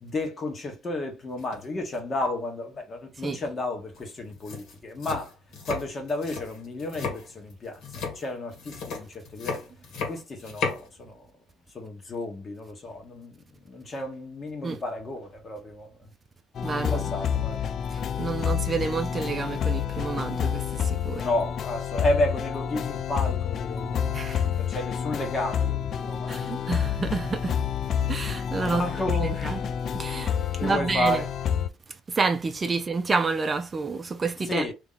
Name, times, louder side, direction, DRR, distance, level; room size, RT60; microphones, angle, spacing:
voice 1, 0.0-5.3 5.6-9.6 10.0-11.3 11.7-16.1 16.7-17.6 21.1-24.1 24.6-26.9 28.7-29.6 30.5-31.3 34.5-34.7, left 1 dB, 40° left, 1.4 m, -32 dB
sound 1, 1.4-1.7 1.9-2.3 3.9-4.0 4.3-10.9, left 5 dB, 70° left, 1.6 m, -34 dB
sound 2, 16.5-31.7, left 8 dB, 55° left, 0.3 m, -29 dB
voice 2, 16.6-17.2 17.9-21.3 24.1-24.4 26.3-27.6 28.1-28.8 29.2-29.7 29.9-30.4 30.6-31.2 32.1-34.6, right 4 dB, 30° right, 0.5 m, -29 dB
2.9 x 2.8 x 3.9 m
supercardioid pair, 80°, 0 cm